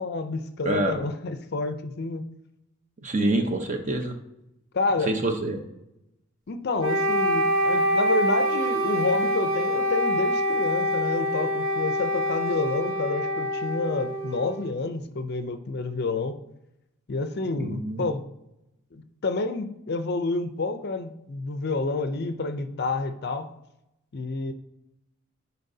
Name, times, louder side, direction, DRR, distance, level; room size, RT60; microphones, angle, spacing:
voice 1, 0.0-2.3 4.7-5.1 6.5-16.3 17.1-18.2 18.9-23.5 24.1-24.5, left 3 dB, 50° left, 9 dB, 0.5 m, -29 dB
voice 2, 0.6-1.0 3.0-4.1 5.1-5.6 17.5-18.1, right 1 dB, 35° right, 5 dB, 0.7 m, -26 dB
Wind instrument woodwind instrument, 6.8-14.8, equal, 75° right, 1.0 m, -25 dB
10.0 x 4.1 x 2.7 m, 0.86 s
head